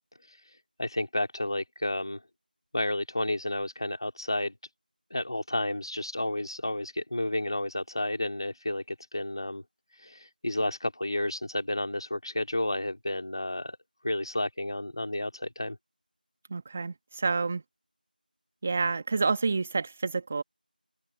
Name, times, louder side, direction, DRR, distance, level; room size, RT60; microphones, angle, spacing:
voice 1, 0.8-2.2 2.7-4.5 5.1-9.6 10.0-13.8 14.0-15.8, left 1 dB, 30° left, 3.2 m, -31 dB
voice 2, 16.5-17.6 18.6-20.4, right 4 dB, 5° right, 1.5 m, -28 dB
figure-of-eight pair, 175°, 5 cm